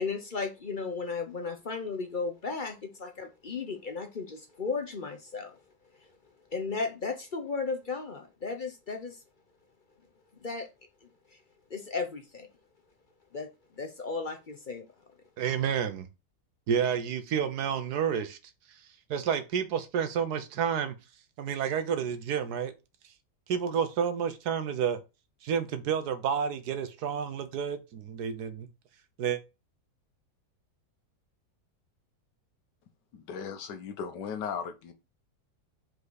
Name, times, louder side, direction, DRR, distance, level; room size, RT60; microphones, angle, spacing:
voice 1, 0.0-5.6 6.5-9.2 10.4-10.7 11.0-11.4 11.7-12.5 13.3-13.5 13.8-14.8, left 4 dB, 45° left, 0.7 m, -35 dB
voice 2, 15.4-16.1 16.7-18.4 19.1-20.9 21.4-22.7 23.5-25.0 25.4-28.7 29.2-29.4, right 7 dB, 70° right, 1.4 m, -30 dB
voice 3, 33.1-34.9, left 6 dB, 90° left, 1.6 m, -37 dB
5.3 x 4.7 x 4.0 m
omnidirectional pair, 1.8 m